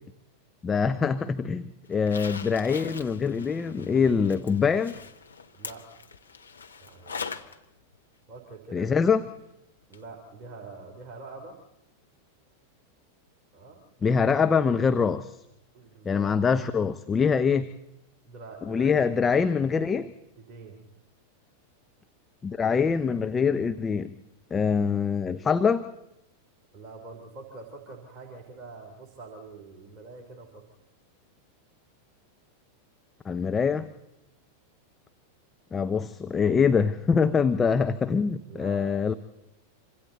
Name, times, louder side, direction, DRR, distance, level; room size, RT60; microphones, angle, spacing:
voice 1, 0.6-5.0 8.7-9.2 14.0-15.4 16.0-17.7 18.7-20.1 22.4-24.1 24.5-25.9 33.2-33.9 35.7-39.1, left 6 dB, 20° left, 9 dB, 0.8 m, -24 dB
Zipper (clothing), 1.9-7.6 7.9-8.0 9.9-10.0 10.4-10.5, left 5 dB, 75° left, 1.1 m, -41 dB
voice 2, 5.5-5.9 6.8-7.4 8.3-9.0 9.9-11.6 13.5-13.8 15.7-16.3 18.2-19.6 20.4-20.8 26.7-30.7 38.5-39.0, right 3 dB, 30° right, 2 dB, 3.3 m, -45 dB
27.0 x 25.0 x 4.1 m, 0.87 s
figure-of-eight pair, 90°, 0 cm